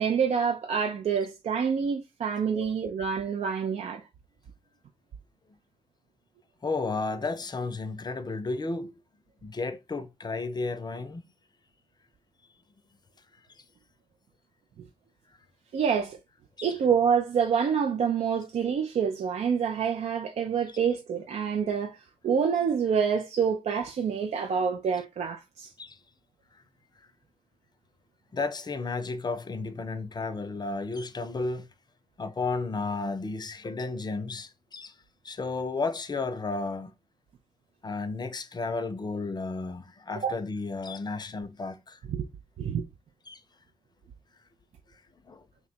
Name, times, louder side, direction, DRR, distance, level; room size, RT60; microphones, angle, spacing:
voice 1, 0.0-4.0 15.7-16.2 16.6-22.0 22.2-25.7 40.2-40.3 42.1-42.3 42.6-42.8, right 7 dB, 60° right, 0.5 m, -27 dB
voice 2, 6.6-8.9 9.4-11.3 13.6-13.7 16.6-16.7 25.8-26.0 28.3-31.7 32.2-34.9 35.2-36.9 37.8-42.0 43.3-43.4 45.2-45.4, left 3 dB, 35° left, 0.6 m, -33 dB
2.9 x 2.2 x 4.1 m
hypercardioid pair, 40°, 13 cm